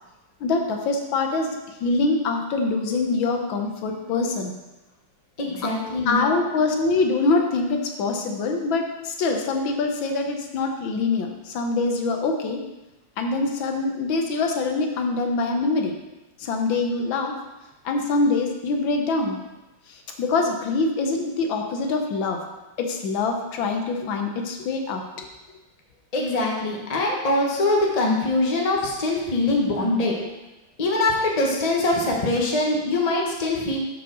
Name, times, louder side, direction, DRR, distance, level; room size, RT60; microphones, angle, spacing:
voice 1, 0.4-4.5 5.6-5.7 6.1-12.6 13.2-15.9 16.4-17.4 17.8-19.4 19.9-22.4 22.8-25.3, left 3 dB, 80° left, 3 dB, 1.7 m, -24 dB
voice 2, 5.4-6.2 26.1-30.1 30.8-33.8, left 2 dB, 25° left, -2 dB, 1.1 m, -23 dB
6.6 x 5.1 x 6.1 m, 1.1 s
omnidirectional pair, 2.1 m